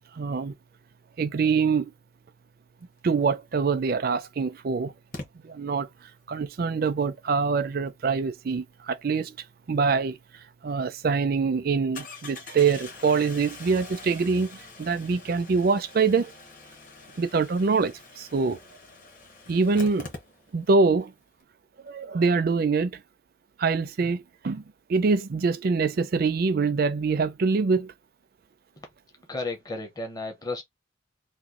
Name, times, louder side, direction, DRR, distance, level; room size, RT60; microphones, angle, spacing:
voice 1, 0.1-0.5 1.2-1.9 3.0-4.9 5.4-5.9 6.3-9.3 9.7-10.2 10.6-16.3 17.2-18.6 19.5-20.1 20.5-21.1 21.8-23.0 23.6-24.6 24.9-27.9, right 4 dB, 50° right, 0.4 m, -24 dB
Engine starting, 3.6-3.7 5.1-5.3 10.3-10.4 10.8-10.9 11.9-20.8 21.0-21.1 21.3-21.4, left 3 dB, 45° left, 1.0 m, -44 dB
voice 2, 29.3-30.6, left 3 dB, 20° left, 0.6 m, -33 dB
3.0 x 2.2 x 3.6 m
head